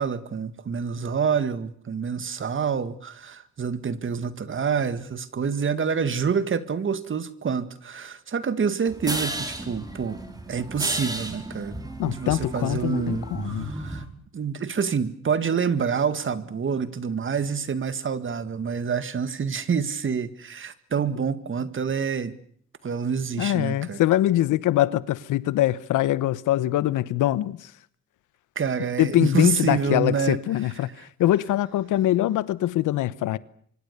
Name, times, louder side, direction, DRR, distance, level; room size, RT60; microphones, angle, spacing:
voice 1, 0.0-10.2 10.5-14.0 14.3-22.4 22.8-24.0 28.6-30.4, right 6 dB, 40° right, 2.0 m, -27 dB
sound 1, 8.9-14.1, right 1 dB, 10° right, 4.4 m, -33 dB
voice 2, 12.0-13.7 23.4-27.7 29.0-33.4, left 14 dB, 85° left, 1.1 m, -23 dB
25.0 x 24.5 x 6.9 m
cardioid pair, 90°, 30 cm